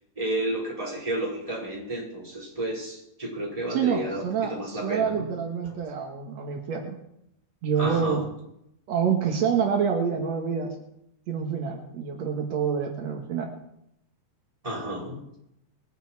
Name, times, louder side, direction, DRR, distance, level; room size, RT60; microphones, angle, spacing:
voice 1, 0.1-5.3 7.8-8.2 14.6-15.3, right 1 dB, 5° right, -5 dB, 4.4 m, -32 dB
voice 2, 3.7-7.0 7.6-8.2 8.9-10.7 11.3-13.5, right 7 dB, 90° right, 2 dB, 1.5 m, -27 dB
21.5 x 10.0 x 4.7 m, 0.80 s
omnidirectional pair, 5.5 m